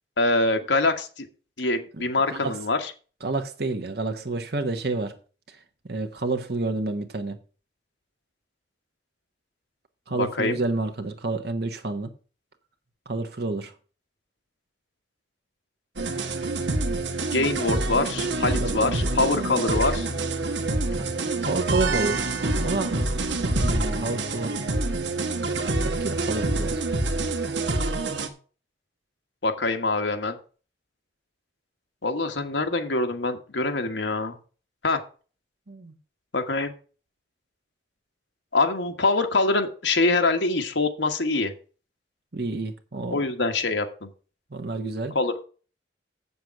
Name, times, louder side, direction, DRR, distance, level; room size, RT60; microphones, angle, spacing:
voice 1, 0.2-1.3 1.6-2.9 10.1-10.6 17.3-20.1 29.4-30.4 32.0-34.4 34.8-35.0 36.3-36.7 38.5-41.5 43.1-44.1 45.1-45.4, left 3 dB, 80° left, 1.5 m, -24 dB
voice 2, 3.2-5.1 5.5-5.6 5.8-7.4 10.1-12.1 13.1-13.7 18.5-19.5 20.9-24.6 25.8-26.9 35.7-35.9 42.3-43.2 44.5-45.2, right 3 dB, 55° right, 1.1 m, -30 dB
sound 1, 16.0-28.3, right 2 dB, 80° right, 1.4 m, -26 dB
7.9 x 6.9 x 5.9 m
head